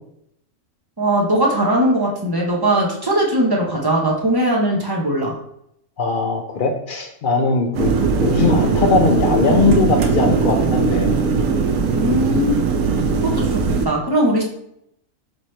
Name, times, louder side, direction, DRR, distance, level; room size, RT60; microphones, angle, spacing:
voice 1, 1.0-5.4 11.9-12.7 13.2-14.4, right 1 dB, 25° right, -2 dB, 0.6 m, -19 dB
voice 2, 6.0-11.1, left 4 dB, 65° left, 4 dB, 0.5 m, -19 dB
sound 1, 7.7-13.9, right 5 dB, 80° right, 1.0 m, -19 dB
5.3 x 2.9 x 3.1 m, 0.75 s
omnidirectional pair, 1.4 m